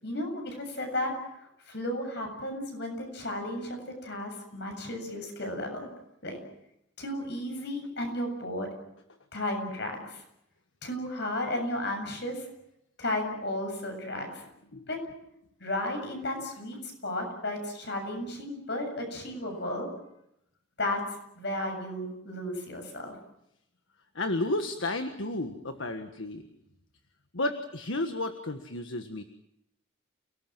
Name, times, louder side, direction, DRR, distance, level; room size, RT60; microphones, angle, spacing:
voice 1, 0.0-5.9 6.2-6.4 7.0-8.7 9.3-10.2 10.8-12.5 13.0-14.4 14.9-15.0 15.6-19.9 20.8-21.1 21.4-23.2, left 1 dB, 55° left, 4 dB, 7.4 m, -34 dB
voice 2, 24.1-26.4 27.3-29.2, left 2 dB, 75° left, 8 dB, 1.6 m, -32 dB
29.0 x 19.0 x 7.5 m, 0.78 s
head